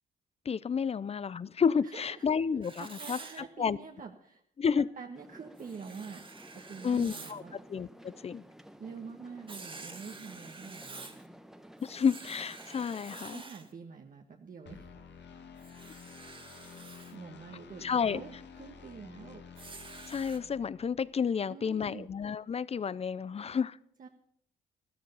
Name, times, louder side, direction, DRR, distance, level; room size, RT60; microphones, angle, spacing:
voice 1, 0.5-3.2 3.6-3.8 4.6-4.9 6.8-8.4 11.8-13.4 17.8-18.2 20.1-23.8, left 6 dB, 30° left, 0.5 m, -31 dB
voice 2, 1.8-2.2 2.8-4.4 4.8-6.2 6.5-7.6 8.8-11.1 13.3-14.9 17.1-19.4 21.5-22.1 24.0-24.1, right 5 dB, 45° right, 1.3 m, -46 dB
Writing, 2.6-3.4 5.6-7.4 9.5-11.2 11.8-13.7 15.6-17.1 19.6-20.4, right 3 dB, 25° right, 1.6 m, -48 dB
sound 1, 5.1-13.3, equal, ahead, 1.0 m, -53 dB
sound 2, 14.7-21.1, left 6 dB, 60° left, 1.9 m, -51 dB
13.5 x 13.0 x 5.6 m
cardioid pair, 90°, 20 cm